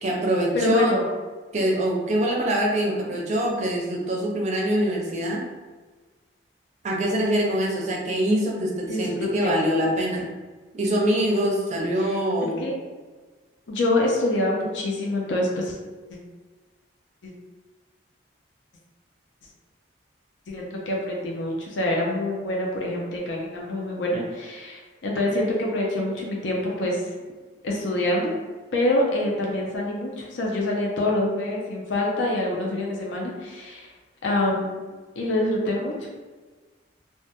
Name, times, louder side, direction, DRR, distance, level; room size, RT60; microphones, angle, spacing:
voice 1, 0.0-0.9 1.5-5.4 6.8-10.3 10.7-12.7, right 1 dB, 35° right, -2 dB, 0.4 m, -24 dB
voice 2, 0.5-1.0 8.9-9.5 12.6-12.7 13.7-15.8 16.1-16.2 17.2-17.3 20.5-27.1 27.6-28.3 28.7-33.9 34.2-34.8 35.2-36.1, left 1 dB, 75° left, -2 dB, 0.4 m, -26 dB
2.2 x 2.1 x 2.8 m, 1.3 s
head